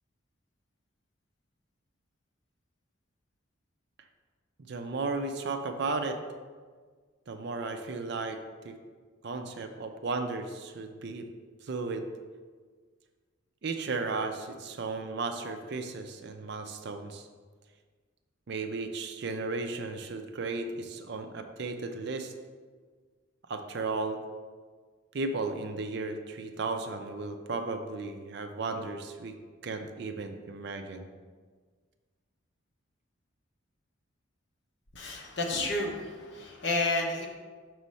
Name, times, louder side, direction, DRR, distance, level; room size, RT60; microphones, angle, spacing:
voice 1, 4.7-6.2 7.3-8.8 9.2-11.3 11.6-12.1 13.6-17.3 18.5-22.3 23.5-24.2 25.1-29.4 29.6-31.1, right 3 dB, 55° right, 6 dB, 0.5 m, -35 dB
voice 2, 34.9-37.3, left 2 dB, 60° left, 0 dB, 0.9 m, -31 dB
6.2 x 3.1 x 5.4 m, 1.5 s
head